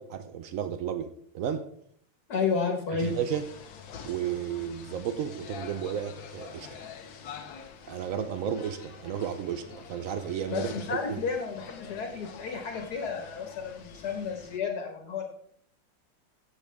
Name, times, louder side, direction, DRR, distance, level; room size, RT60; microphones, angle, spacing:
voice 1, 0.0-1.7 2.9-3.5 4.0-6.8 7.9-11.2, right 8 dB, 90° right, 10 dB, 0.7 m, -33 dB
voice 2, 2.3-3.1 10.5-15.2, left 5 dB, 55° left, 3 dB, 2.0 m, -32 dB
sound 1, 3.0-14.6, left 7 dB, 70° left, 1.7 m, -46 dB
15.5 x 7.2 x 3.5 m, 0.65 s
omnidirectional pair, 2.2 m